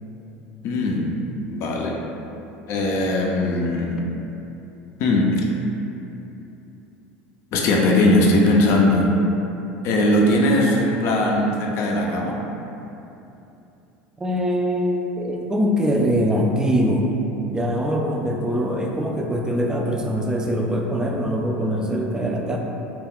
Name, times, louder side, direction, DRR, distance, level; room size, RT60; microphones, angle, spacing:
voice 1, 0.6-1.1 1.5-2.0 2.7-4.1 5.0-5.5 7.5-9.1 9.8-12.4, left 1 dB, 55° left, -1 dB, 0.4 m, -19 dB
voice 2, 14.2-17.1 17.5-22.6, equal, 10° right, 0 dB, 0.4 m, -23 dB
2.3 x 2.2 x 3.5 m, 2.9 s
supercardioid pair, 90°, 5 cm